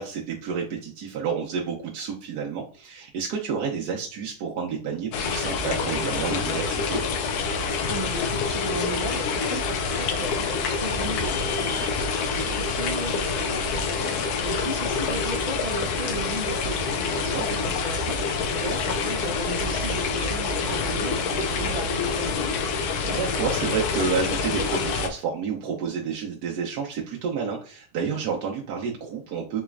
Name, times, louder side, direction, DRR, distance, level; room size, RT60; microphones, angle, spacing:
voice 1, 0.0-7.0 17.1-17.4 23.1-29.6, right 6 dB, 80° right, -1 dB, 1.2 m, -30 dB
sound 1, 5.1-25.1, left 4 dB, 80° left, 1.1 m, -27 dB
voice 2, 7.9-22.5, right 1 dB, 40° right, 0 dB, 0.5 m, -35 dB
4.1 x 3.0 x 2.3 m, 0.41 s
omnidirectional pair, 1.7 m